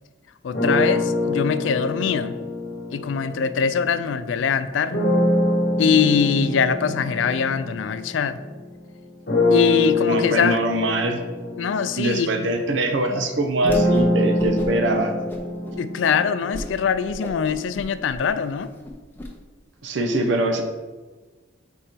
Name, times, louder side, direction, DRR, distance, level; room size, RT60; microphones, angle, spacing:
voice 1, 0.4-2.4 2.9-5.0 5.8-8.4 9.5-10.6 11.6-12.3 15.8-18.7, left 6 dB, 80° left, 12 dB, 0.4 m, -22 dB
sound 1, 0.5-4.1 4.9-8.7 9.3-17.2, left 2 dB, 55° left, 1.0 m, -25 dB
voice 2, 10.1-11.2 12.0-15.2 19.8-20.6, right 2 dB, 80° right, 5 dB, 0.7 m, -23 dB
Whoosh swoosh swish, 13.6-14.1 14.4-14.9 15.3-15.8 16.1-16.2 16.5-16.7 17.0-19.3, equal, 10° left, 0.6 m, -35 dB
4.4 x 4.2 x 5.1 m, 1.3 s
head